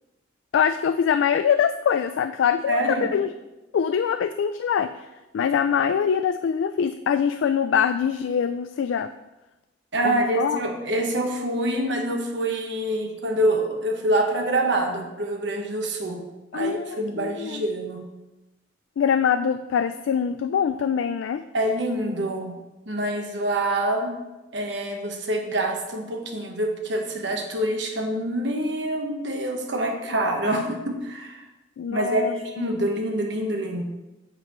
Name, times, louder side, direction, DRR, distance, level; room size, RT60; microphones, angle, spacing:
voice 1, 0.5-3.3 3.7-4.9 5.3-9.1 10.0-10.6 16.5-17.6 19.0-21.4 30.5-30.6 31.8-32.7, left 7 dB, 75° left, 10 dB, 0.3 m, -24 dB
voice 2, 2.7-3.1 9.9-16.2 16.5-18.0 21.5-22.5 22.9-24.1 24.5-31.5 31.9-33.8, right 1 dB, 65° right, 2 dB, 1.2 m, -26 dB
9.0 x 6.9 x 3.1 m, 1.0 s
head